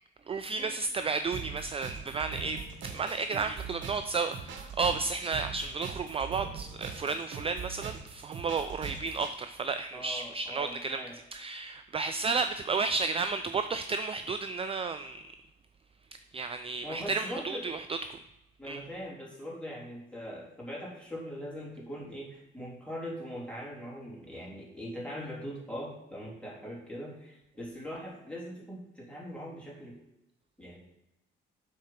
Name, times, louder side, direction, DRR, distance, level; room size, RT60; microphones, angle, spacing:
voice 1, 0.3-2.6 2.9-11.0 11.3-15.3 16.3-18.0 18.6-18.8, right 4 dB, 30° right, 10 dB, 0.4 m, -32 dB
sound 1, 1.3-9.3, right 6 dB, 70° right, 1.3 m, -42 dB
voice 2, 9.9-11.2 16.8-17.7 18.6-29.9 30.6-30.8, equal, 5° left, -5 dB, 3.3 m, -41 dB
7.5 x 4.5 x 5.8 m, 0.88 s
cardioid pair, 90°, 20 cm